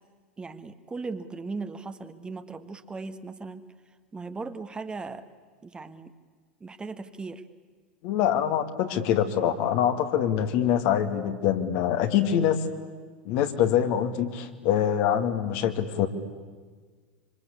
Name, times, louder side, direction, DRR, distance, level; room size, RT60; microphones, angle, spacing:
voice 1, 0.4-3.7 4.1-5.2 5.6-6.1 6.6-7.4, right 4 dB, 15° right, 9 dB, 1.7 m, -37 dB
voice 2, 8.0-12.6 13.3-16.1, left 9 dB, 55° left, 7 dB, 2.4 m, -24 dB
26.0 x 25.5 x 8.6 m, 1.5 s
hypercardioid pair, 85°, 5 cm